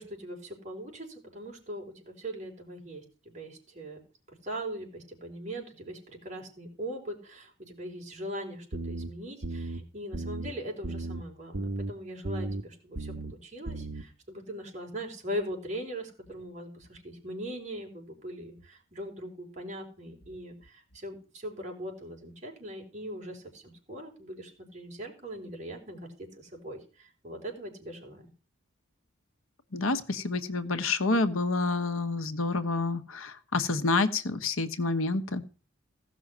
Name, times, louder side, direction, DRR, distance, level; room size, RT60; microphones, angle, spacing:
voice 1, 0.0-4.0 4.3-28.2, equal, 35° right, 0 dB, 4.8 m, -40 dB
sound 1, 8.7-9.1 9.4-9.8 10.1-10.5 10.8-11.2 11.5-11.9 12.2-12.6 12.9-13.3 13.7-14.0, right 2 dB, 65° right, 1.3 m, -34 dB
voice 2, 29.7-35.4, left 3 dB, 80° left, 9 dB, 1.2 m, -28 dB
16.5 x 6.3 x 7.3 m, 0.38 s
head